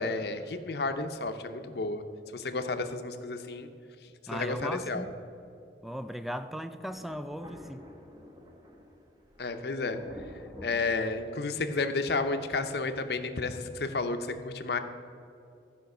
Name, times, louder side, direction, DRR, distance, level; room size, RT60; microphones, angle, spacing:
voice 1, 0.0-2.0 2.3-3.7 4.3-5.0 9.4-10.0 10.6-14.8, left 3 dB, 60° left, 8 dB, 0.7 m, -31 dB
voice 2, 4.3-5.1 5.8-7.9, equal, ahead, 10 dB, 0.3 m, -37 dB
Thunder, 6.9-11.7, left 1 dB, 20° right, 1.0 m, -49 dB
12.0 x 5.2 x 6.5 m, 2.6 s
head